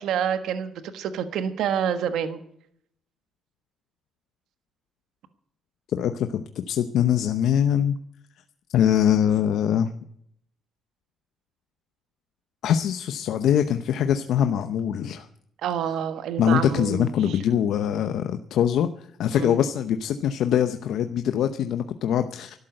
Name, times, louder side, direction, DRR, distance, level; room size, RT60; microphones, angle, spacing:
voice 1, 0.0-2.4 15.6-17.4 19.3-19.5, right 8 dB, 80° right, 10 dB, 1.4 m, -28 dB
voice 2, 5.9-7.9 8.7-9.9 12.6-15.3 16.4-22.6, left 9 dB, 75° left, 8 dB, 0.8 m, -23 dB
12.5 x 12.0 x 7.8 m, 0.69 s
cardioid pair, 90°, 0 cm